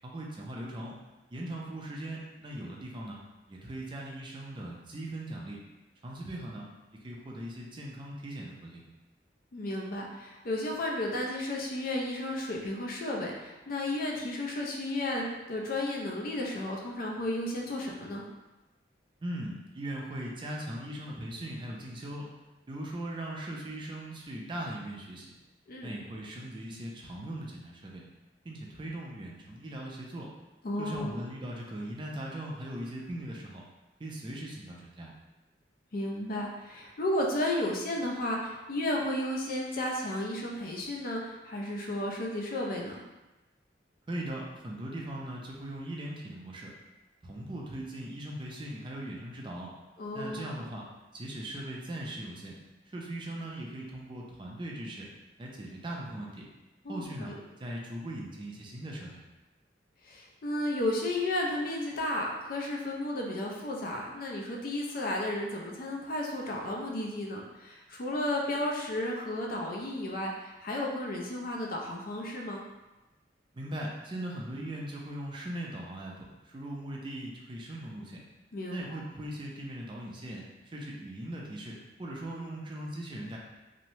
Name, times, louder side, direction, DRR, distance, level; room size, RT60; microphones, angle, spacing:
voice 1, 0.0-1.0 1.3-3.2 3.5-5.6 6.0-8.8 19.2-22.3 22.7-25.3 25.8-28.0 28.4-30.3 30.8-33.6 34.0-35.1 44.1-46.7 47.2-49.7 50.1-50.8 51.1-52.5 52.9-55.1 55.4-56.5 56.9-57.3 57.6-59.2 73.5-78.2 78.7-83.4, right 1 dB, 30° right, -2 dB, 0.4 m, -39 dB
voice 2, 9.5-18.2 25.7-25.9 30.6-31.2 35.9-43.0 50.0-50.6 56.8-57.3 60.0-72.6 78.5-78.8, left 1 dB, 55° left, -1 dB, 0.4 m, -33 dB
3.0 x 2.1 x 2.7 m, 1.1 s
head